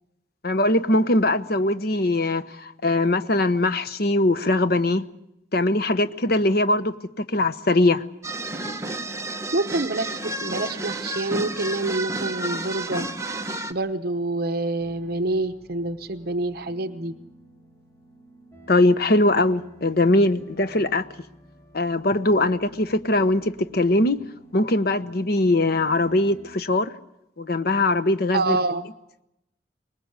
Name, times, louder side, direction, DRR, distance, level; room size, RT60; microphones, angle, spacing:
voice 1, 0.4-5.1 5.5-6.9 7.3-8.0 18.7-21.1 21.7-24.2 24.5-26.9 27.4-28.6, left 2 dB, 60° left, 12 dB, 1.0 m, -21 dB
sound 1, 8.2-13.7, right 2 dB, 15° right, 1.1 m, -31 dB
voice 2, 9.5-13.1 13.7-17.1 28.3-28.9, right 2 dB, 60° right, 7 dB, 0.9 m, -27 dB
sound 2, 14.8-26.6, right 2 dB, 15° left, 4.0 m, -51 dB
24.0 x 20.0 x 8.2 m, 0.85 s
head